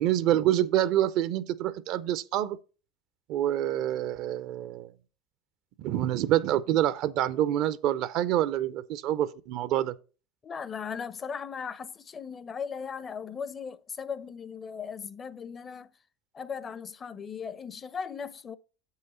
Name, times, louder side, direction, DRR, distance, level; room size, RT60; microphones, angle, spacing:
voice 1, 0.0-2.6 3.3-4.9 5.8-9.9, right 12 dB, 60° right, 0.4 m, -27 dB
voice 2, 10.4-15.9 16.3-18.6, left 6 dB, 30° left, 0.5 m, -37 dB
7.6 x 5.6 x 4.1 m
hypercardioid pair, 90°, 0 cm